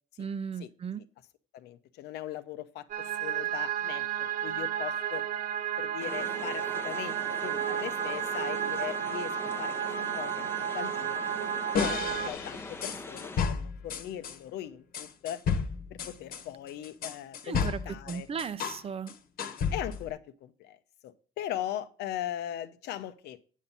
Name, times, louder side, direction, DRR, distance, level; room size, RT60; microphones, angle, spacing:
voice 1, 0.2-1.0 17.4-19.1, right 6 dB, 35° right, 0.6 m, -36 dB
voice 2, 1.5-5.2 5.8-9.7 10.1-11.4 11.7-15.4 15.9-18.3 19.7-20.8 21.0-23.4, left 12 dB, 80° left, 0.8 m, -39 dB
sound 1, 2.9-12.3, right 10 dB, 55° right, 1.0 m, -32 dB
sound 2, 6.0-13.4, left 2 dB, 15° left, 0.8 m, -43 dB
sound 3, 11.7-14.4 14.9-18.8 19.1-20.1, left 6 dB, 60° left, 1.2 m, -32 dB
8.4 x 7.3 x 4.0 m
cardioid pair, 110°, 17 cm